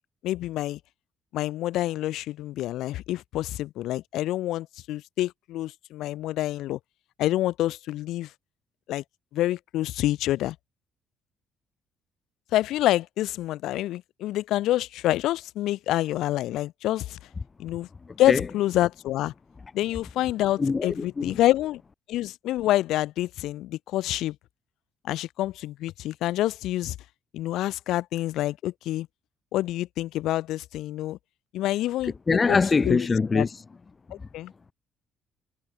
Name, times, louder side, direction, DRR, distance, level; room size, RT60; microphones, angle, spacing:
voice 1, 0.2-0.8 1.3-6.8 7.2-8.3 8.9-9.0 9.3-10.6 12.5-17.2 17.6-17.9 18.2-19.3 19.7-21.8 22.1-24.4 25.0-27.0 27.3-29.1 29.5-31.2 31.5-32.1 32.5-32.6 32.8-33.0 33.3-33.5 34.1-34.5, left 15 dB, 75° left, 3.5 m, -27 dB
voice 2, 32.3-33.5, left 4 dB, 35° left, 0.3 m, -22 dB
supercardioid pair, 65°, 0 cm